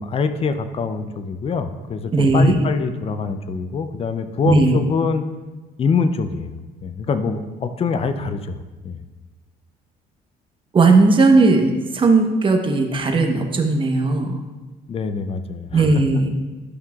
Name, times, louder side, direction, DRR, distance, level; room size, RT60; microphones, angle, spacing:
voice 1, 0.0-5.2 5.8-6.6 6.8-8.6 8.8-9.0 14.9-15.9, left 5 dB, 35° left, 10 dB, 0.6 m, -24 dB
voice 2, 2.1-2.5 4.4-4.8 10.7-14.4 15.7-16.3, right 3 dB, 30° right, 3 dB, 1.0 m, -16 dB
11.5 x 5.6 x 2.4 m, 1.3 s
cardioid pair, 110°, 17 cm